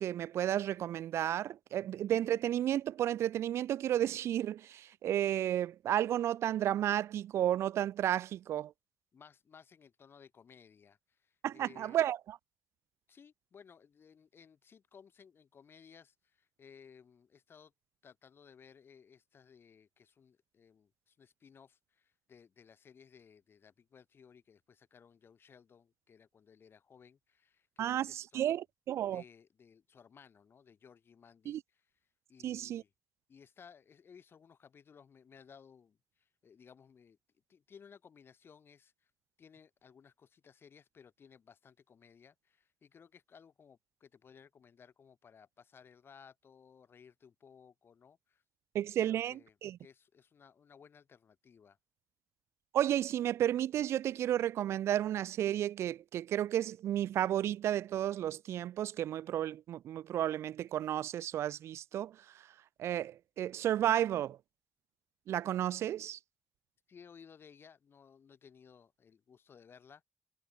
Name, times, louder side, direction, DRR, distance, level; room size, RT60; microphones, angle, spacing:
voice 1, 0.0-8.7 11.4-12.2 27.8-29.2 31.5-31.6 32.4-32.8 48.7-49.8 52.7-62.2 62.8-64.4 65.3-66.2, right 11 dB, 65° right, 0.5 m, -32 dB
voice 2, 9.1-12.0 13.1-17.7 18.0-28.6 29.1-31.9 32.3-32.9 33.3-37.2 37.5-39.1 39.4-48.4 49.0-51.8 66.9-70.0, left 6 dB, 50° left, 3.8 m, -59 dB
hypercardioid pair, 50°, 5 cm